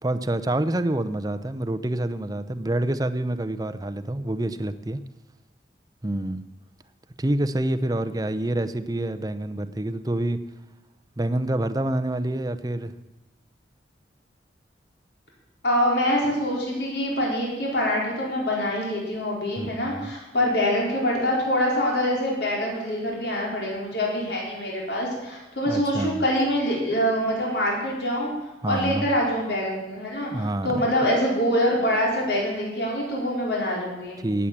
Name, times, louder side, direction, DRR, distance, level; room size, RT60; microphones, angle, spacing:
voice 1, 0.0-5.0 6.0-6.4 7.2-10.4 11.2-12.9 19.6-20.1 25.7-26.2 28.6-29.1 30.3-30.8 34.2-34.5, right 1 dB, 20° right, 12 dB, 0.6 m, -27 dB
voice 2, 15.6-28.3 28.7-34.2, equal, 65° left, -2 dB, 4.2 m, -25 dB
17.0 x 8.3 x 7.4 m, 1.0 s
head